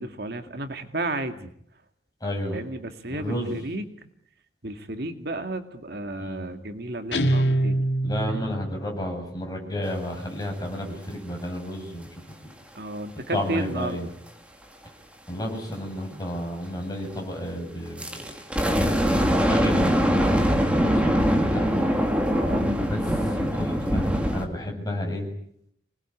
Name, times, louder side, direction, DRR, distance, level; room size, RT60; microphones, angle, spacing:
voice 1, 0.0-1.5 2.5-3.8 4.6-7.8 8.3-8.4 12.8-14.1 22.3-22.7, right 2 dB, 60° right, 7 dB, 2.2 m, -33 dB
voice 2, 2.2-2.6 3.1-3.7 6.2-6.5 8.0-12.1 12.4-12.5 13.3-14.1 15.3-18.4 19.5-21.9 22.9-25.3, equal, 20° left, 1 dB, 7.5 m, -32 dB
Guitar, 7.1-8.8, right 1 dB, 80° left, 2.3 m, -24 dB
sound 1, 18.0-24.5, equal, 5° right, 2.9 m, -22 dB
26.0 x 21.0 x 10.0 m, 0.71 s
head